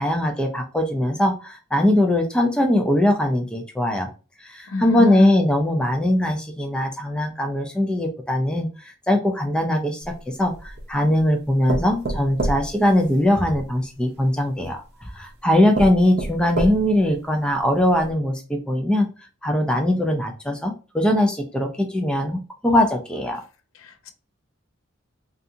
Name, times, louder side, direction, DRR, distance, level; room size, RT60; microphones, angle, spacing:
voice 1, 0.0-4.1 4.4-19.1 19.4-23.4, left 1 dB, 5° left, 0.4 m, -21 dB
voice 2, 4.7-5.3 23.7-24.1, left 1 dB, 80° left, 0.5 m, -26 dB
sound 1, 10.0-10.9 11.7-13.6 14.6-14.7 15.3-15.4 15.7-17.1 17.6-17.7 18.0-18.1, right 2 dB, 50° right, 0.6 m, -28 dB
2.7 x 2.4 x 2.5 m
head